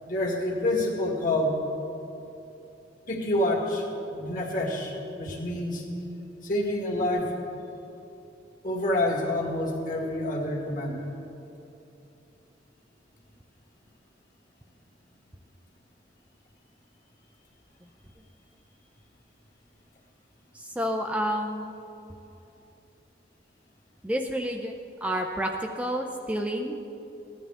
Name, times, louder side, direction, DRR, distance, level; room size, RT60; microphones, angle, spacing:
voice 1, 0.1-1.6 3.1-3.8 4.1-5.8 6.4-7.3 8.6-11.1, left 1 dB, 50° left, -2 dB, 1.9 m, -27 dB
voice 2, 20.5-21.7 24.0-24.8 25.0-26.8, equal, 5° right, 3 dB, 0.4 m, -29 dB
16.5 x 11.5 x 3.4 m, 2.9 s
head